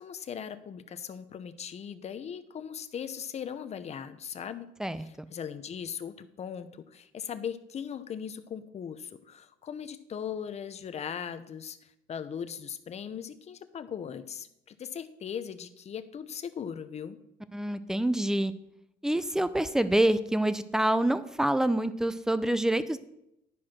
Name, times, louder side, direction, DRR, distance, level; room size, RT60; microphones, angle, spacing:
voice 1, 0.0-4.7 5.0-17.2, left 8 dB, 40° left, 11 dB, 0.8 m, -39 dB
voice 2, 17.5-18.5 19.0-23.0, right 1 dB, 5° right, 13 dB, 0.5 m, -26 dB
11.0 x 4.8 x 5.9 m, 0.83 s
cardioid pair, 110°, 17 cm